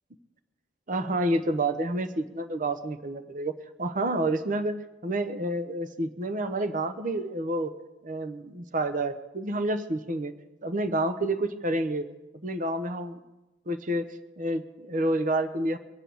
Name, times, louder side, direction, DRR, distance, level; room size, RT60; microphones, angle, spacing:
voice 1, 0.9-3.5 3.8-4.8 5.0-7.7 8.0-10.3 10.6-12.1 12.4-13.2 13.7-14.1 14.4-15.8, right 1 dB, 45° right, 10 dB, 0.9 m, -29 dB
23.0 x 8.2 x 7.0 m, 1.0 s
head